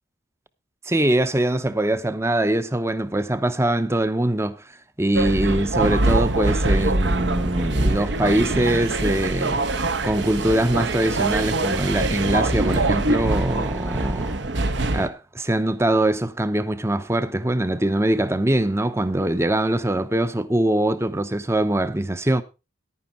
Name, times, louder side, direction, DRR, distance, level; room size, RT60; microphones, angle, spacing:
voice 1, 0.9-4.6 5.0-14.5 14.9-22.4, right 1 dB, 15° right, 0.7 m, -23 dB
sound 1, 5.2-15.1, right 2 dB, 65° right, 1.0 m, -23 dB
11.0 x 9.6 x 4.3 m
head